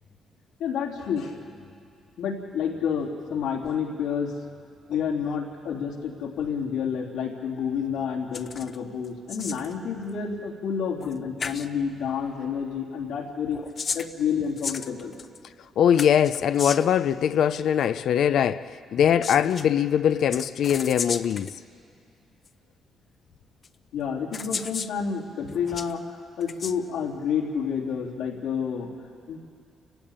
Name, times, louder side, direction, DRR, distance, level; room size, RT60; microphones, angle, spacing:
voice 1, 0.6-1.4 2.2-4.3 4.9-13.6 13.9-15.1 23.9-26.0 26.4-28.9 29.3-29.4, left 7 dB, 90° left, 3.3 m, -29 dB
sound 1, 8.3-8.8 9.0-9.7 11.0-11.1 11.4-11.7 13.4-15.4 16.0-17.0 19.0-19.7 20.3-21.5 22.5-22.6 23.6-23.7 24.3-24.9 25.4-25.9 26.4-26.8, left 5 dB, 45° left, 0.8 m, -34 dB
voice 2, 15.8-21.5, left 9 dB, 70° left, 0.6 m, -22 dB
29.0 x 16.0 x 8.9 m
cardioid pair, 90°, 0 cm